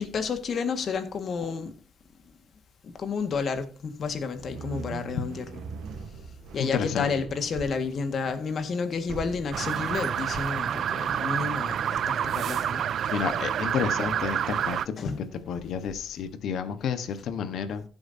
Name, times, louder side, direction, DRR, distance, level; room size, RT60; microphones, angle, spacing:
voice 1, 0.0-1.7 2.8-5.6 6.5-11.8 12.1-12.8 13.1-13.2 15.0-15.2, left 5 dB, 55° left, 1.8 m, -31 dB
sound 1, 4.4-15.5, right 5 dB, 85° right, 1.3 m, -44 dB
voice 2, 6.6-7.1 13.1-15.1 15.5-17.8, left 7 dB, 75° left, 1.3 m, -30 dB
sound 2, 9.5-14.9, right 9 dB, 65° right, 0.3 m, -28 dB
15.5 x 7.9 x 2.8 m
cardioid pair, 90°, 0 cm